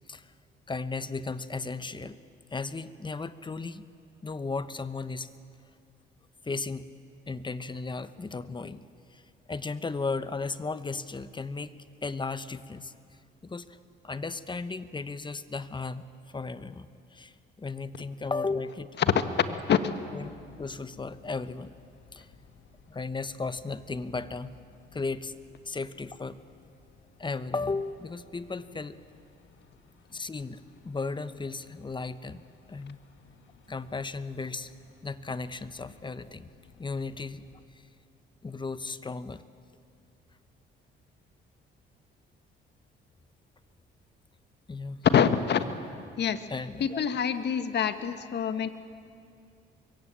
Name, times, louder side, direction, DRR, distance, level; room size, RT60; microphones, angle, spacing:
voice 1, 0.7-2.2 2.5-3.8 4.2-5.3 6.4-6.9 7.3-8.8 9.1-9.2 9.5-11.8 12.0-12.9 13.4-13.8 14.0-18.9 20.1-20.3 20.6-21.7 22.1-22.3 22.9-24.5 24.9-25.3 25.6-26.4 27.2-29.0 30.1-32.4 32.7-33.0 33.7-34.7 35.0-36.5 36.8-37.4 38.4-39.4 44.7-45.0 46.5-47.0, left 3 dB, 25° left, 14 dB, 1.0 m, -35 dB
voice 2, 19.0-19.9 45.0-45.7 46.2-46.5 46.8-48.7, left 7 dB, 60° left, 10 dB, 1.5 m, -25 dB
sound 1, 20.2-37.7, left 5 dB, 75° left, 2.8 m, -58 dB
25.0 x 22.5 x 8.9 m, 2.3 s
cardioid pair, 90°, 20 cm